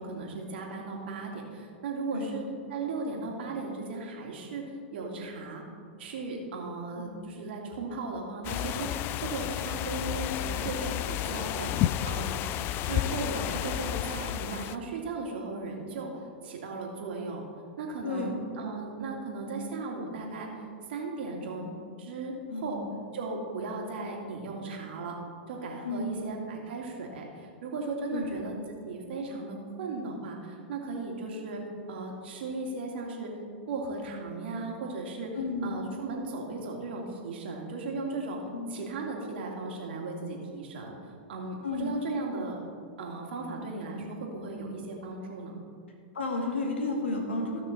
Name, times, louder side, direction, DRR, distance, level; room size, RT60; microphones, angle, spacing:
voice 1, 0.0-5.6 6.0-12.4 12.8-16.1 16.4-17.4 17.8-20.5 20.9-21.7 22.0-22.8 23.1-25.1 25.5-33.3 33.7-38.4 38.7-42.6 43.0-45.6, right 3 dB, 65° right, 0 dB, 2.3 m, -36 dB
sound 1, 8.4-14.8, left 12 dB, 35° left, 0.3 m, -31 dB
voice 2, 18.0-18.3 22.5-23.0 25.8-26.3 28.1-28.4 35.3-35.8 38.5-38.7 41.6-41.9 46.1-47.6, left 3 dB, 85° left, 1 dB, 2.1 m, -32 dB
15.5 x 6.0 x 4.3 m, 2.4 s
hypercardioid pair, 115°, 6 cm